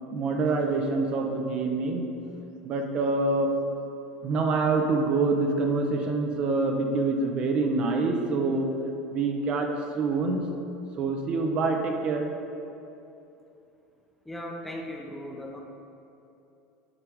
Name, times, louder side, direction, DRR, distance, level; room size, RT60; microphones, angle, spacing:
voice 1, 0.1-2.1 2.6-3.5 4.2-8.7 9.1-9.7 9.9-10.4 11.0-12.3, right 3 dB, 45° right, 3 dB, 0.8 m, -26 dB
voice 2, 14.3-15.6, left 1 dB, 5° left, 1 dB, 0.8 m, -37 dB
9.8 x 3.5 x 4.6 m, 2.8 s
supercardioid pair, 100°, 2 cm